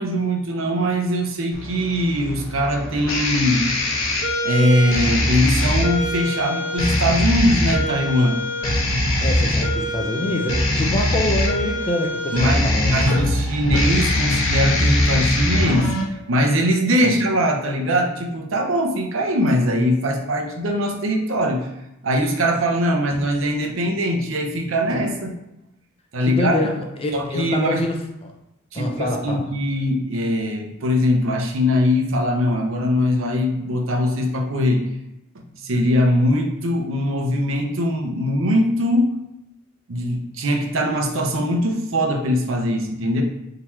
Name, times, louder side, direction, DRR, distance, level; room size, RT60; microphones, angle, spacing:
voice 1, 0.0-3.7 4.4-8.4 12.3-15.9 16.3-21.7 22.0-25.3 26.1-26.5 27.1-27.8 28.7-34.8 35.6-39.2 39.9-43.2, equal, 70° right, 2 dB, 0.7 m, -21 dB
sound 1, 1.5-16.0, left 1 dB, 90° left, 0.9 m, -22 dB
voice 2, 9.2-13.1 17.0-17.1 26.3-28.3 28.7-29.4, left 1 dB, 30° left, 2 dB, 0.6 m, -25 dB
3.8 x 2.8 x 4.4 m, 0.87 s
head